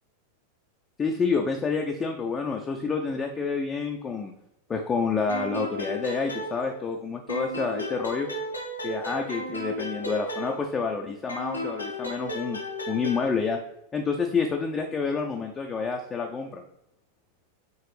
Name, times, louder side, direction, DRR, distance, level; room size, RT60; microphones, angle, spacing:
voice 1, 1.0-4.3 4.7-8.3 8.8-12.6 12.9-13.6 13.9-16.6, left 5 dB, 20° left, 2 dB, 0.5 m, -28 dB
sound 1, 5.3-7.0 7.3-10.9 11.3-13.3, equal, 80° left, 0.7 m, -34 dB
4.7 x 3.2 x 3.2 m, 0.82 s
figure-of-eight pair, 90°, 0 cm